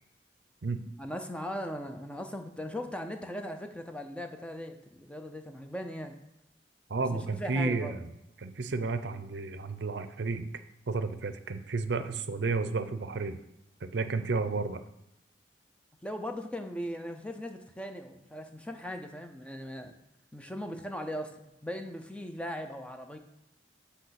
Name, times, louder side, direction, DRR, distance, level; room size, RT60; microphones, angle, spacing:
voice 1, 1.0-6.1 7.1-7.9 16.0-19.9 20.3-23.2, equal, 5° left, 5 dB, 0.6 m, -39 dB
voice 2, 6.9-8.1 8.4-10.5 10.9-13.4 13.9-14.8, right 3 dB, 75° right, 10 dB, 0.6 m, -32 dB
7.7 x 3.4 x 5.8 m, 0.87 s
head